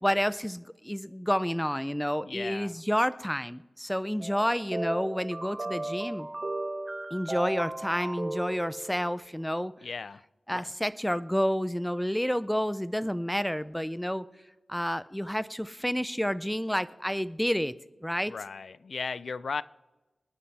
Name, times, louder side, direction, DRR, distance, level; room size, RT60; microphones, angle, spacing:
voice 1, 0.0-6.3 7.1-9.7 10.5-14.3 14.7-17.7 18.0-18.3, equal, 5° left, 0.5 m, -29 dB
voice 2, 2.2-2.7 9.8-10.2 10.5-10.7 18.3-19.6, left 5 dB, 75° left, 0.4 m, -36 dB
sound 1, 4.2-9.2, right 2 dB, 30° right, 1.2 m, -36 dB
24.5 x 9.9 x 4.2 m
wide cardioid pair, 100°, 0 cm